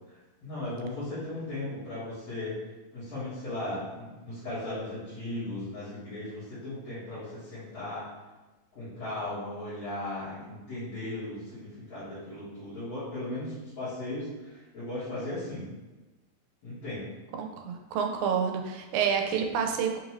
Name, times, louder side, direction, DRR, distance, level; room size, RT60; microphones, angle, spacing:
voice 1, 0.1-2.6 2.9-8.1 8.7-15.7 16.6-17.0, left 1 dB, 60° left, -14 dB, 2.5 m, -37 dB
voice 2, 17.3-20.0, right 7 dB, 90° right, 3 dB, 2.0 m, -28 dB
6.0 x 2.5 x 3.0 m, 1.1 s
omnidirectional pair, 3.4 m